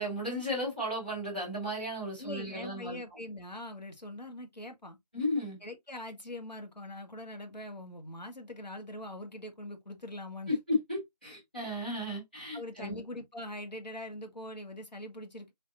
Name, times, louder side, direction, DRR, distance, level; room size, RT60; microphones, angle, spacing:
voice 1, 0.0-3.0 5.1-5.6 10.5-13.0, left 1 dB, 15° left, 1.3 m, -34 dB
voice 2, 2.2-5.0 5.6-10.5 12.5-15.5, left 1 dB, 85° left, 1.7 m, -42 dB
5.2 x 3.6 x 2.6 m
figure-of-eight pair, 180°, 21 cm